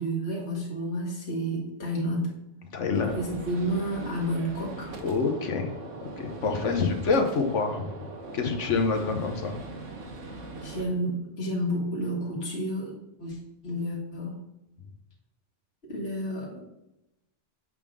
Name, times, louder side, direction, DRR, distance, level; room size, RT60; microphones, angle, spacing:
voice 1, 0.0-2.3 3.0-5.0 10.6-14.4 15.8-16.6, equal, 60° left, -4 dB, 1.9 m, -31 dB
voice 2, 2.7-3.1 5.0-5.7 6.2-7.8 8.3-9.6, left 4 dB, 85° left, 5 dB, 1.4 m, -26 dB
Gunshot gunfire, 2.9-10.8, right 2 dB, 90° right, 1.5 m, -41 dB
7.9 x 3.6 x 6.2 m, 0.90 s
omnidirectional pair, 1.2 m